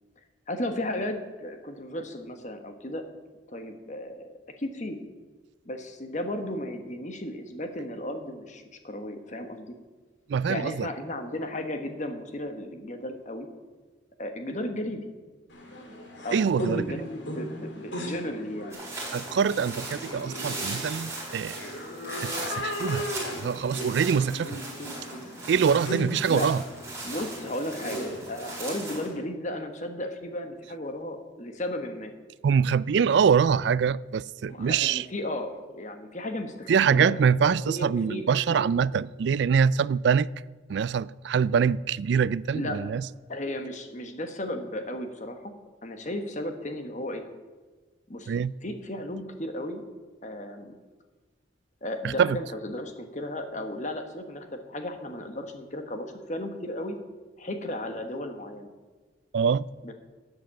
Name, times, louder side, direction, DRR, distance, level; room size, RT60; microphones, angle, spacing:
voice 1, 0.5-3.0 3.5-5.0 5.6-9.7 10.5-13.5 14.2-15.1 16.2-18.8 26.3-26.5 27.0-32.1 34.5-38.7 42.5-42.8 43.3-45.5 45.8-47.2 48.1-48.3 48.6-49.8 50.2-50.7 51.8-56.9 57.4-58.7 59.8-59.9, left 1 dB, 40° left, 1.2 m, -35 dB
voice 2, 10.3-10.9 16.3-16.9 19.1-21.6 22.2-23.1 23.4-24.6 25.5-26.6 32.4-35.1 36.7-40.3 40.7-43.0 48.3-48.5 52.0-52.4 59.3-59.7, right 6 dB, 60° right, 0.3 m, -24 dB
sound 1, 15.5-29.2, equal, 70° left, 2.2 m, -37 dB
sound 2, 18.7-29.1, right 2 dB, 15° right, 4.6 m, -38 dB
11.5 x 8.1 x 7.5 m
head